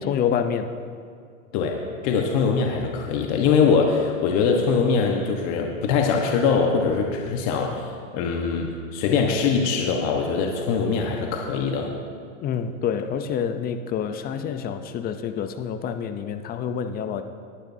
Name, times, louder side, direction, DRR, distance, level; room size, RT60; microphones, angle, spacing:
voice 1, 0.0-0.7 12.4-17.2, left 8 dB, 25° left, 9 dB, 0.7 m, -27 dB
voice 2, 2.0-11.9, left 5 dB, 40° left, 1 dB, 1.3 m, -22 dB
19.5 x 11.5 x 2.8 m, 2.1 s
hypercardioid pair, 130°, 39 cm